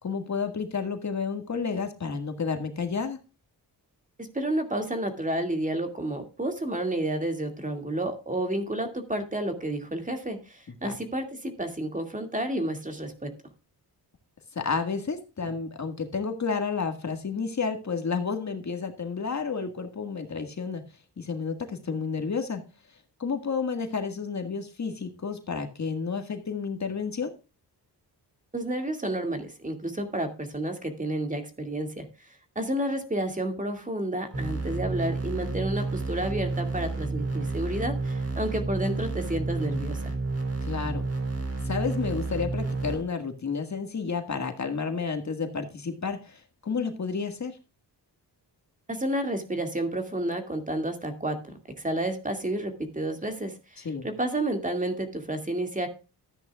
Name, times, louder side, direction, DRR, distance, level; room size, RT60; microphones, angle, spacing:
voice 1, 0.0-3.2 10.8-11.0 14.5-20.8 21.2-22.6 23.2-27.3 40.6-41.1 41.6-47.6 53.8-54.1, left 5 dB, 45° left, 6 dB, 1.8 m, -31 dB
voice 2, 4.2-13.3 28.5-32.1 32.6-40.1 48.9-51.4 51.8-55.9, right 1 dB, 20° right, 6 dB, 2.3 m, -30 dB
sound 1, 34.3-43.0, right 3 dB, 35° right, 3.9 m, -30 dB
14.0 x 9.9 x 2.4 m, 0.31 s
wide cardioid pair, 100°, 40 cm